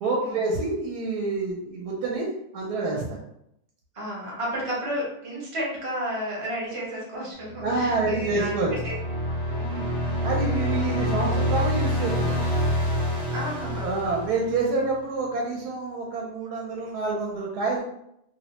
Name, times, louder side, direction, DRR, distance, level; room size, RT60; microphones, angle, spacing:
voice 1, 0.0-2.3 2.5-3.1 7.6-8.7 10.2-12.5 13.7-17.8, right 3 dB, 75° right, -1 dB, 1.1 m, -27 dB
voice 2, 3.9-9.0 9.5-10.1 13.3-13.9, equal, 30° right, -4 dB, 0.6 m, -32 dB
sound 1, 7.5-14.9, equal, 20° left, 0.6 m, -27 dB
2.7 x 2.1 x 2.8 m, 0.77 s
omnidirectional pair, 1.7 m